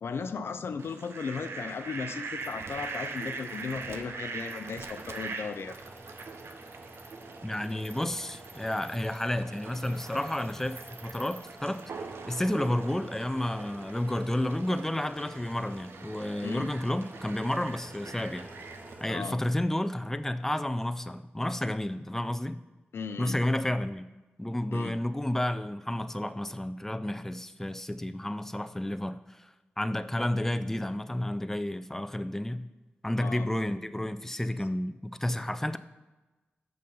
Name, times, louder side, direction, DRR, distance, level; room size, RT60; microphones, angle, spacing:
voice 1, 0.0-5.7 16.4-16.7 19.1-19.4 22.9-23.4 24.7-25.0 33.2-33.5, left 5 dB, 70° left, 11 dB, 0.4 m, -36 dB
Fowl, 0.8-18.9, right 4 dB, 75° right, 0.6 m, -43 dB
sound 1, 2.4-19.1, right 2 dB, 40° right, 1.1 m, -50 dB
voice 2, 7.4-11.8 12.3-18.5 19.0-22.6 23.2-24.1 24.4-29.5 29.8-32.7 33.0-35.8, left 1 dB, 10° left, 11 dB, 0.4 m, -31 dB
6.6 x 5.4 x 5.3 m, 1.1 s
cardioid pair, 45°, 4 cm